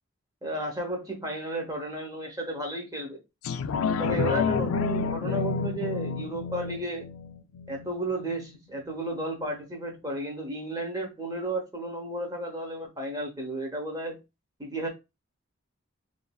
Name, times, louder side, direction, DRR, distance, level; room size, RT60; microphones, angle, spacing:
voice 1, 0.4-3.2 4.0-7.1 7.7-14.2 14.6-14.9, right 1 dB, 15° right, 0.9 m, -33 dB
sound 1, 3.4-8.5 8.9-9.0, left 5 dB, 80° left, 0.3 m, -29 dB
3.3 x 2.5 x 2.2 m
head